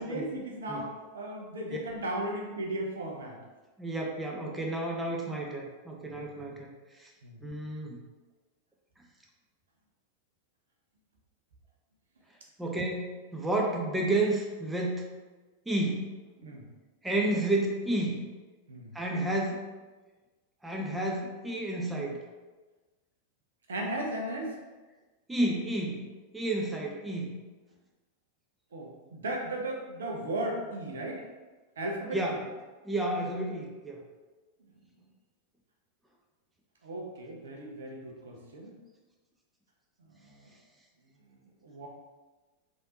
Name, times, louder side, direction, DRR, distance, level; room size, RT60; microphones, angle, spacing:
voice 1, 0.0-3.4 6.0-6.2 7.2-7.4 16.4-16.6 18.7-18.9 23.7-24.6 28.7-31.2 31.8-32.2 36.8-38.7 40.1-40.5 41.6-41.9, right 1 dB, 65° right, 0 dB, 0.6 m, -36 dB
voice 2, 3.8-7.1 7.4-8.0 12.6-15.0 15.7-16.1 17.0-18.2 18.9-19.7 20.6-22.2 25.3-26.1 26.3-27.4 32.1-32.4 32.8-34.0, right 1 dB, 10° right, -1 dB, 0.5 m, -31 dB
3.2 x 2.6 x 2.8 m, 1.2 s
figure-of-eight pair, 90°, 0 cm